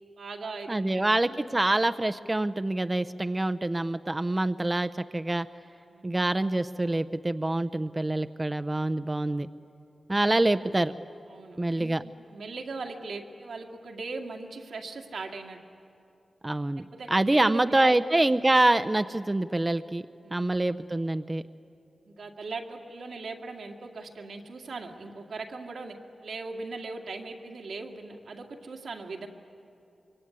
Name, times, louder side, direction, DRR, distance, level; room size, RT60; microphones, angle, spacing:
voice 1, 0.2-1.7 5.9-6.2 11.3-15.6 16.8-18.4 20.2-20.6 22.1-29.3, right 3 dB, 85° right, 2 dB, 2.2 m, -40 dB
voice 2, 0.7-5.5 6.0-9.5 10.1-10.9 11.6-12.0 16.4-20.0 20.3-21.4, right 2 dB, 25° right, 11 dB, 0.6 m, -26 dB
24.5 x 23.0 x 9.5 m, 2.7 s
cardioid pair, 65°, 0 cm